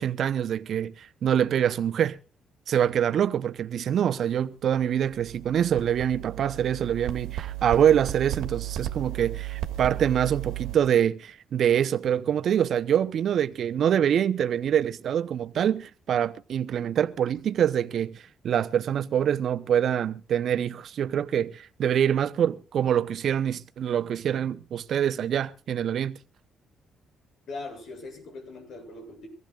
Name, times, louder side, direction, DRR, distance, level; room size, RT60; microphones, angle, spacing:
voice 1, 0.0-2.2 2.7-26.2, right 9 dB, 65° right, 0.9 m, -25 dB
sound 1, 4.8-10.8, right 15 dB, 90° right, 1.7 m, -35 dB
voice 2, 27.5-29.3, left 3 dB, 65° left, 7.6 m, -40 dB
24.5 x 15.0 x 2.5 m
cardioid pair, 90°, 0 cm